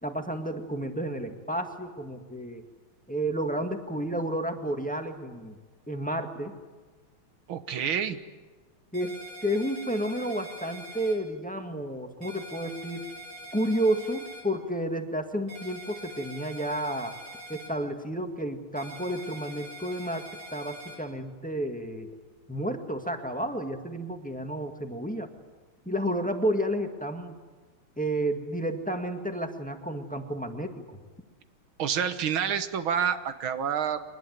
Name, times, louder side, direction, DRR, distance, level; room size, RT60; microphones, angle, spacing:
voice 1, 0.0-2.6 3.1-5.6 5.9-6.5 8.9-13.1 13.5-17.1 17.5-22.1 22.5-25.3 25.8-27.4 28.0-31.0, right 1 dB, 5° left, 5 dB, 1.6 m, -31 dB
voice 2, 7.5-8.2 31.8-34.0, right 8 dB, 75° right, 11 dB, 2.0 m, -28 dB
sound 1, 8.9-11.1 12.2-14.4 15.5-17.7 18.8-21.0, right 1 dB, 50° right, 6.3 m, -44 dB
24.0 x 20.0 x 9.4 m, 1.4 s
omnidirectional pair, 2.2 m